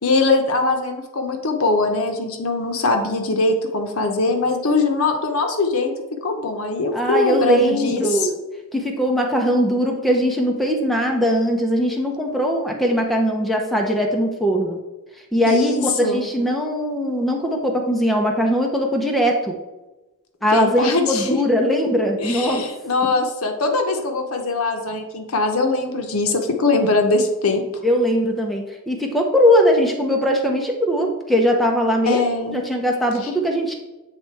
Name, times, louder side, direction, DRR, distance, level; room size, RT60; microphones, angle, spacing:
voice 1, 0.0-5.9 6.2-8.0 15.5-16.2 20.5-21.4 22.2-27.7 32.1-32.6, left 3 dB, 75° left, 4 dB, 0.9 m, -21 dB
voice 2, 6.9-8.4 8.7-14.8 15.3-19.6 20.4-22.7 27.8-32.2 32.5-33.7, equal, ahead, 0 dB, 0.6 m, -20 dB
7.7 x 3.2 x 4.6 m, 1.1 s
head